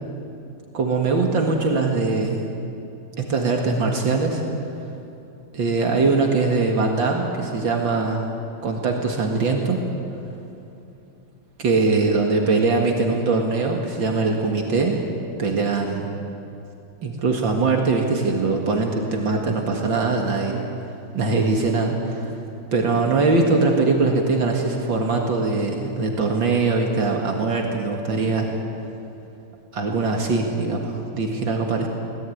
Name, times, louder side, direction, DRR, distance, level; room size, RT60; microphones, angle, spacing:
voice 1, 0.7-2.4 3.2-4.4 5.5-8.3 8.6-9.9 11.6-15.0 15.4-16.1 17.0-20.6 21.1-22.4 22.7-28.6 29.7-31.9, right 3 dB, 65° right, 2 dB, 2.6 m, -22 dB
24.5 x 18.0 x 9.4 m, 2.8 s
omnidirectional pair, 2.2 m